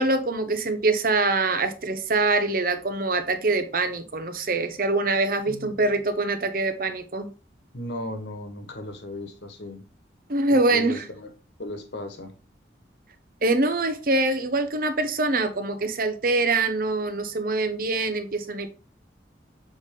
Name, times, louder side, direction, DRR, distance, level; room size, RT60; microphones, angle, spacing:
voice 1, 0.0-7.3 10.3-11.0 13.4-18.7, right 2 dB, 50° right, 0.9 m, -24 dB
voice 2, 7.7-9.8 10.5-11.3 11.6-12.3, left 1 dB, 75° left, 1.4 m, -36 dB
6.8 x 4.2 x 3.6 m
head